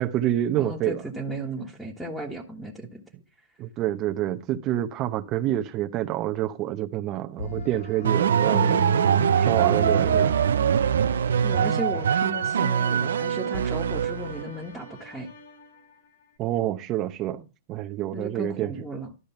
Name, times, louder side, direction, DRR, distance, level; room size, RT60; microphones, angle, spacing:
voice 1, 0.0-1.0 3.6-8.8 9.4-10.4 16.4-17.4 17.7-18.7, right 13 dB, 35° right, 0.8 m, -27 dB
voice 2, 0.6-3.0 8.5-10.2 11.4-15.3 18.1-19.1, equal, ahead, 1.5 m, -35 dB
sound 1, 7.4-16.4, left 3 dB, 75° left, 3.2 m, -45 dB
sound 2, 8.0-14.5, right 8 dB, 90° right, 0.5 m, -23 dB
12.5 x 5.1 x 5.7 m
hypercardioid pair, 130°, 0 cm